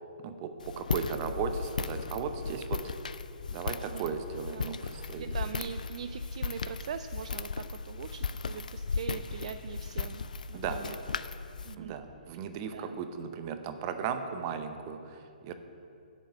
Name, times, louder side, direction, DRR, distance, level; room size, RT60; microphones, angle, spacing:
voice 1, 0.2-2.9 3.5-5.3 10.5-10.8 11.8-15.5, right 7 dB, 30° right, 8 dB, 0.8 m, -36 dB
Walk footsteps, 0.6-11.7, left 5 dB, 60° left, 0.4 m, -36 dB
voice 2, 3.8-4.1 4.5-4.8 5.1-11.0 11.6-12.0 12.7-13.0, right 7 dB, 45° right, 10 dB, 0.3 m, -42 dB
7.5 x 7.3 x 8.3 m, 2.6 s
figure-of-eight pair, 125°, 5 cm